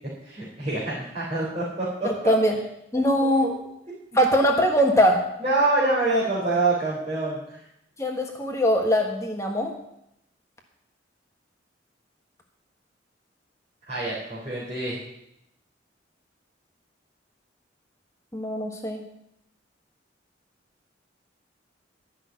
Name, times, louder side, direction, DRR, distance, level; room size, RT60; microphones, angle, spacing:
voice 1, 0.2-2.3 3.2-3.5 5.4-7.7 13.9-15.0, right 2 dB, 35° right, -8 dB, 4.0 m, -26 dB
voice 2, 2.0-2.5 2.9-3.5 4.2-5.2 8.0-9.7 18.3-19.0, equal, 15° left, 1 dB, 1.4 m, -21 dB
13.0 x 6.1 x 9.4 m, 0.80 s
head